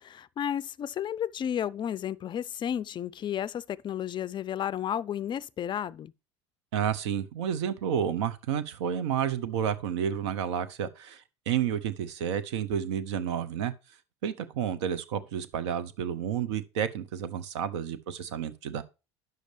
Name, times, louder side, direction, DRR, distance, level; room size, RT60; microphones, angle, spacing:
voice 1, 0.0-6.1, left 9 dB, 30° left, 0.4 m, -32 dB
voice 2, 6.7-11.2 11.5-13.7 14.2-18.8, right 8 dB, 75° right, 0.7 m, -30 dB
9.3 x 6.5 x 3.2 m
hypercardioid pair, 80°, 15 cm